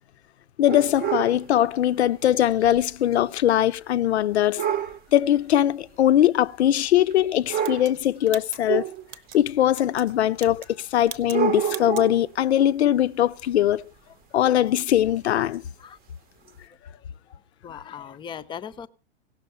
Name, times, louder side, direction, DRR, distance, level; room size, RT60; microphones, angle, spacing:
voice 1, 0.6-4.7 5.1-8.9 9.3-13.9 14.3-15.7, left 12 dB, 80° left, 0.5 m, -21 dB
sound 1, 0.7-1.4 2.6-2.8 3.1-3.2 4.6-5.0 6.0-6.1 7.1-7.2 7.5-8.0 8.7-9.3 10.1-10.2 11.2-12.3 14.8-14.9 15.5-15.6 16.5-16.6, right 10 dB, 25° right, 0.8 m, -28 dB
sound 2, 7.6-9.4 9.7-10.1 10.3-10.8 11.0-11.4 11.7-12.1, right 9 dB, 55° right, 0.9 m, -41 dB
voice 2, 16.8-18.9, left 8 dB, 15° left, 0.5 m, -40 dB
17.0 x 6.3 x 5.6 m
hypercardioid pair, 105°, 33 cm